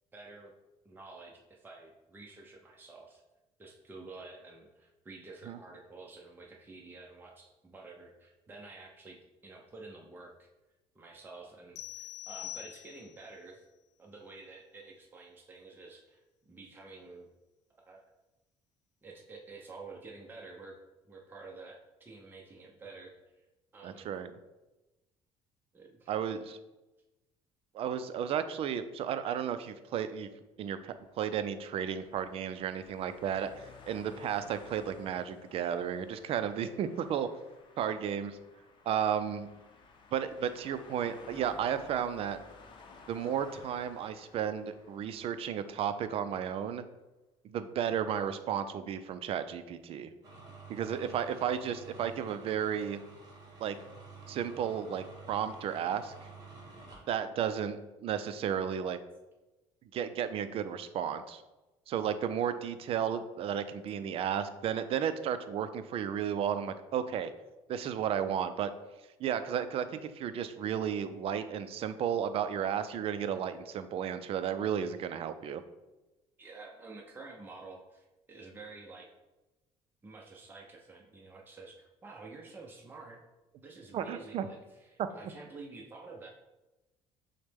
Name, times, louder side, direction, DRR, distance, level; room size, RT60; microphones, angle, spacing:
voice 1, 0.1-0.5 0.8-3.2 3.6-9.2 9.4-10.5 10.9-13.6 14.0-16.2 16.5-17.3 17.8-18.0 19.0-20.8 21.1-23.4 23.7-24.1 25.7-26.1 76.4-79.1 80.0-83.2 83.6-86.3, right 3 dB, 15° right, 0 dB, 0.6 m, -50 dB
sound 1, 11.8-13.3, left 13 dB, 85° left, 0.4 m, -44 dB
voice 2, 23.8-24.3 26.1-26.6 27.7-30.3 30.6-33.5 33.9-37.3 37.8-38.4 38.9-39.5 40.1-42.4 43.1-46.8 47.4-50.1 50.7-53.0 53.6-53.8 54.3-56.1 57.1-59.0 59.9-61.4 61.9-67.3 67.7-68.7 69.2-75.6 83.9-84.5 85.0-85.1, right 8 dB, 55° right, 11 dB, 0.4 m, -33 dB
sound 2, 31.0-46.3, left 4 dB, 45° left, 0.7 m, -56 dB
sound 3, 50.2-57.1, right 4 dB, 35° right, 1.2 m, -50 dB
6.3 x 2.1 x 3.5 m, 1.1 s
cardioid pair, 95°, 12 cm